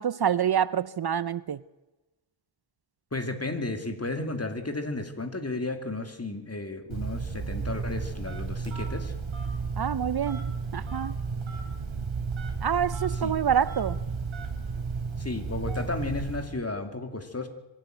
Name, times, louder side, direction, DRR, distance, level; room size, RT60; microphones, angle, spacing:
voice 1, 0.0-1.6 9.8-11.1 12.6-14.0, right 8 dB, 55° right, 18 dB, 0.6 m, -27 dB
voice 2, 3.1-9.1 13.1-13.4 15.2-17.5, left 2 dB, 30° left, 7 dB, 2.8 m, -33 dB
Telephone, 6.9-16.6, right 4 dB, 80° right, 3.1 m, -33 dB
24.5 x 11.5 x 9.3 m, 1.1 s
cardioid pair, 55°, 47 cm